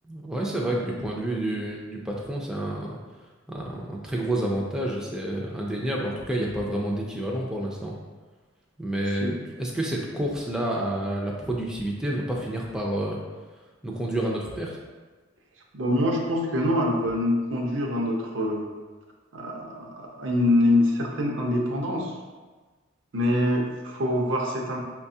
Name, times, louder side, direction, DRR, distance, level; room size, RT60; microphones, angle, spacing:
voice 1, 0.0-3.0 3.5-8.0 8.8-13.2 13.8-14.8, right 1 dB, 5° right, -3 dB, 0.4 m, -29 dB
voice 2, 15.7-18.6 19.3-22.1 23.1-24.8, left 1 dB, 75° right, 0 dB, 0.7 m, -24 dB
5.4 x 2.3 x 2.7 m, 1.3 s
head